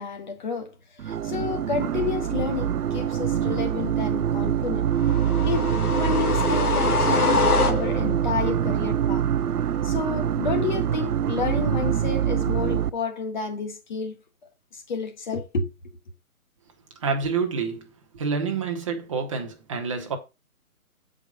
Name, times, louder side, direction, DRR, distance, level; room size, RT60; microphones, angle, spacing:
voice 1, 0.0-4.9 5.4-9.2 9.8-14.2 14.7-15.7, left 5 dB, 30° left, 1.7 m, -30 dB
sound 1, 1.0-12.9, right 9 dB, 90° right, 0.7 m, -25 dB
sound 2, 5.0-8.2, left 4 dB, 90° left, 1.9 m, -24 dB
voice 2, 17.0-20.2, right 5 dB, 20° right, 1.2 m, -28 dB
7.9 x 5.2 x 5.2 m
hypercardioid pair, 165°, 44 cm